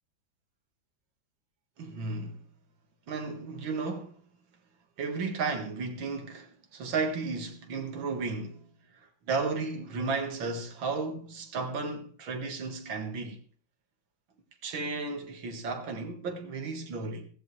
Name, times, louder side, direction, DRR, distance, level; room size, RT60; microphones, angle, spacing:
voice 1, 1.8-2.4 3.1-4.2 5.0-8.6 9.0-13.4 14.6-17.3, right 4 dB, 80° right, 2.6 m, -34 dB
15.5 x 15.5 x 3.2 m
omnidirectional pair, 2.1 m